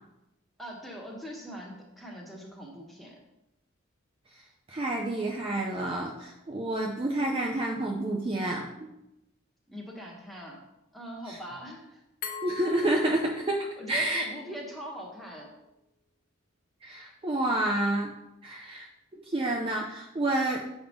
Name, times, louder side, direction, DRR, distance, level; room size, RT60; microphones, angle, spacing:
voice 1, 0.6-3.2 9.7-10.6 10.9-12.0 13.8-15.5, equal, ahead, -2 dB, 1.1 m, -42 dB
voice 2, 4.3-8.9 11.3-11.4 12.4-14.2 16.8-18.1 18.4-18.9 19.1-20.6, right 1 dB, 25° right, 0 dB, 0.5 m, -29 dB
Glass, 12.2-15.0, left 4 dB, 45° left, 1.2 m, -42 dB
7.2 x 3.5 x 5.1 m, 0.91 s
head